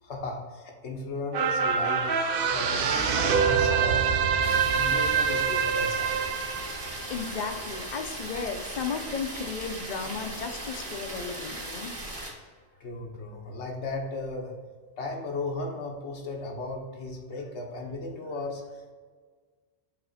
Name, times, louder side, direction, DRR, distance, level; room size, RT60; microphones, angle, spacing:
voice 1, 0.0-2.1 2.5-4.1 4.7-6.4 12.8-14.5 15.0-18.9, left 2 dB, 90° left, 1 dB, 1.4 m, -36 dB
sound 1, 1.3-8.0 8.4-8.5, right 6 dB, 60° right, 0.7 m, -25 dB
sound 2, 4.4-12.3, right 1 dB, 45° right, 1.7 m, -38 dB
voice 2, 7.1-11.9, left 5 dB, 50° left, 6 dB, 0.7 m, -34 dB
6.8 x 4.1 x 4.1 m, 1.5 s
omnidirectional pair, 1.1 m